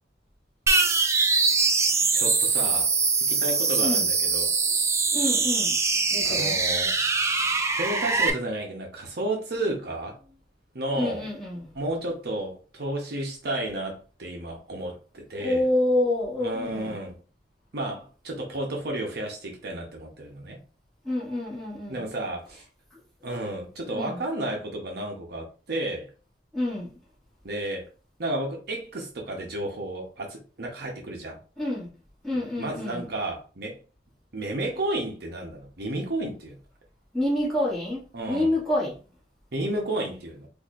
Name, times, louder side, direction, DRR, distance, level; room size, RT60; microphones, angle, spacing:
sound 1, 0.7-8.3, right 4 dB, 15° right, 0.3 m, -23 dB
voice 1, 2.1-2.9 3.3-4.5 6.2-6.9 7.8-10.1 10.7-11.2 11.7-15.6 16.4-17.2 17.7-20.6 21.9-22.6 23.2-26.1 27.4-27.9 28.2-31.4 32.6-33.8 34.3-36.6 38.1-38.5 39.5-40.5, right 1 dB, 60° right, 0.8 m, -32 dB
voice 2, 5.1-5.8 6.1-6.6 10.9-11.7 15.4-17.0 21.0-22.0 22.9-23.0 23.9-24.2 26.5-26.9 31.6-31.9 32.2-33.1 37.1-38.9, left 1 dB, ahead, 1.9 m, -27 dB
4.2 x 2.7 x 2.5 m
head